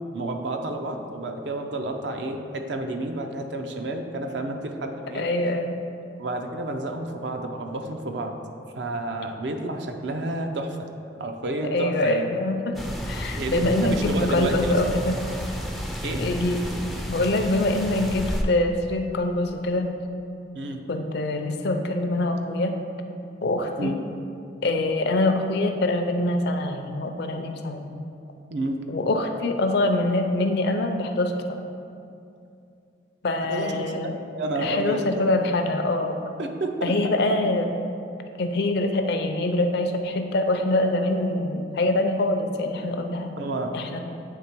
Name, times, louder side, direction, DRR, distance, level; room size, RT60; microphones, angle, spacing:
voice 1, 0.1-5.3 6.2-8.4 8.8-10.8 11.2-12.2 13.3-14.8 16.0-16.3 20.5-20.8 23.8-24.0 28.5-28.8 33.4-35.2 36.4-37.4 43.4-43.7, right 2 dB, 65° right, 5 dB, 0.5 m, -30 dB
voice 2, 5.1-5.8 11.7-12.8 13.1-15.2 16.2-16.6 17.1-19.9 20.9-22.8 23.4-24.0 24.6-27.9 28.9-31.6 33.2-34.2 34.6-36.2 36.8-37.7 38.4-43.3 43.7-44.0, left 2 dB, 60° left, 5 dB, 0.5 m, -24 dB
sound 1, 12.7-18.4, equal, ahead, 0.3 m, -31 dB
8.3 x 3.3 x 4.5 m, 2.5 s
head